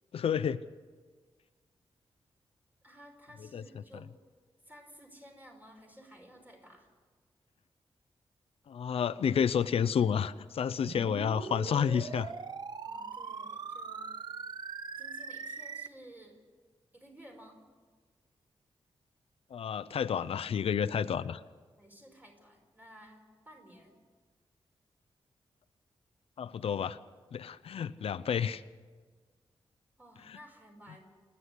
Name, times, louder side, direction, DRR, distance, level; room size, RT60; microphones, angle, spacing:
voice 1, 0.1-0.6 3.5-3.6 8.7-12.3 19.5-21.4 26.4-27.0 27.3-28.6, left 7 dB, 75° left, 14 dB, 0.6 m, -30 dB
voice 2, 2.8-4.0 4.6-6.9 11.1-11.4 12.8-14.1 15.0-16.4 16.9-17.6 21.8-23.9 30.0-31.0, right 1 dB, 15° right, 2 dB, 4.9 m, -54 dB
sound 1, 10.9-15.9, right 5 dB, 45° right, 0.6 m, -41 dB
28.5 x 9.7 x 10.0 m, 1.5 s
wide cardioid pair, 135°, 10 cm